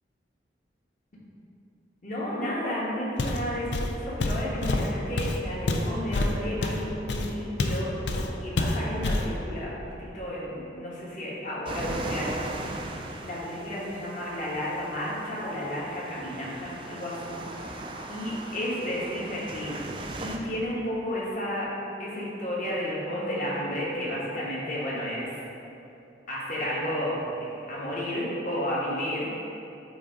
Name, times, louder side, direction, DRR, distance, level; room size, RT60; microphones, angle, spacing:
voice 1, 2.0-17.8 18.1-19.8 20.2-21.7 22.0-25.4 26.3-29.4, equal, 45° left, -7 dB, 1.3 m, -32 dB
Walk footsteps, 3.2-3.5 3.7-7.8 8.1-8.3 8.6-9.3, left 2 dB, 70° left, 0.5 m, -27 dB
sound 1, 11.7-20.4, right 2 dB, 25° right, 0.3 m, -38 dB
7.7 x 2.7 x 4.9 m, 2.8 s
head